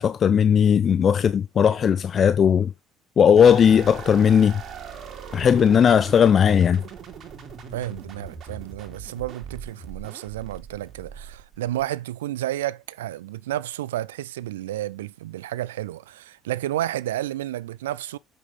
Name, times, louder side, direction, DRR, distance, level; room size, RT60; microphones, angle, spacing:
voice 1, 0.0-2.7 3.2-4.6 5.3-6.8, left 8 dB, 45° left, 0.5 m, -17 dB
sound 1, 3.4-11.8, right 6 dB, 50° right, 3.0 m, -40 dB
voice 2, 7.7-18.2, right 14 dB, 80° right, 0.4 m, -31 dB
7.6 x 6.6 x 3.7 m
hypercardioid pair, 60°, 0 cm